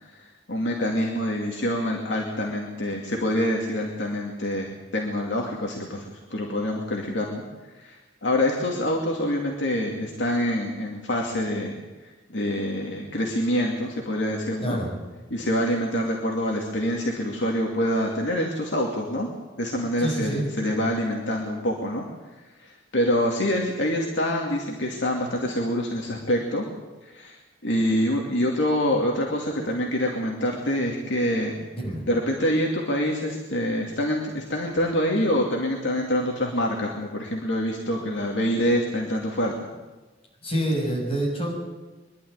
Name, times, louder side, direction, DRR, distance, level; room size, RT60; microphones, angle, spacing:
voice 1, 0.0-7.4 7.8-11.8 12.0-14.8 15.3-19.3 19.6-22.0 22.6-26.7 27.0-31.5 32.1-39.7, equal, 65° left, 0 dB, 2.6 m, -26 dB
voice 2, 14.6-14.9 20.0-20.5 31.7-32.0 40.4-41.5, right 1 dB, 30° left, -2 dB, 7.1 m, -27 dB
23.5 x 12.0 x 9.7 m, 1.2 s
head